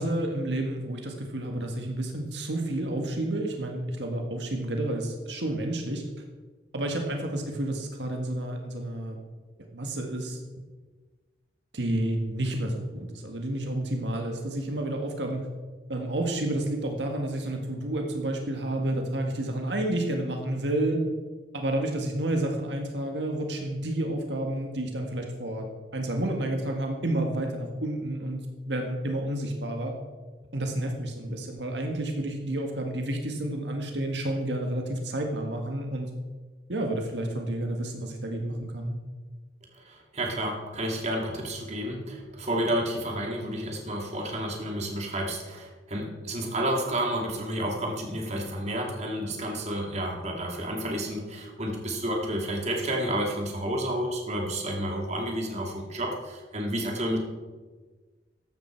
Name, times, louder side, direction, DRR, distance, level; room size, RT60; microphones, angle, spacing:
voice 1, 0.0-6.0 6.7-9.2 9.7-10.4 11.7-15.4 15.9-21.0 21.5-25.7 25.9-28.4 28.7-29.9 30.5-36.1 36.7-38.9, right 1 dB, 85° right, 3 dB, 1.7 m, -30 dB
voice 2, 39.8-57.2, right 1 dB, 40° right, 0 dB, 2.5 m, -30 dB
14.5 x 11.5 x 4.6 m, 1.3 s
head